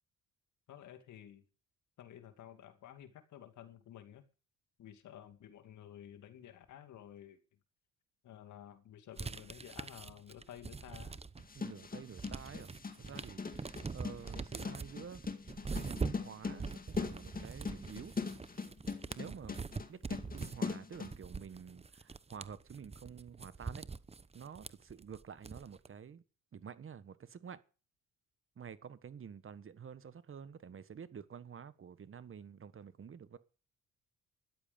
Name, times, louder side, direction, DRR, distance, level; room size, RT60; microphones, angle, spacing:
voice 1, 0.7-1.4 2.0-4.2 4.8-7.4 8.2-11.2, left 10 dB, 75° left, 2.5 m, -53 dB
sound 1, 9.2-11.6 11.9-25.9, right 4 dB, 20° right, 0.9 m, -44 dB
sound 2, 11.4-21.1, left 4 dB, 30° left, 2.1 m, -41 dB
voice 2, 11.5-15.2 15.7-18.1 19.1-23.9 24.3-26.2 26.5-27.6 28.6-33.4, right 7 dB, 45° right, 1.5 m, -49 dB
13.0 x 11.5 x 5.3 m
cardioid pair, 90°, 30 cm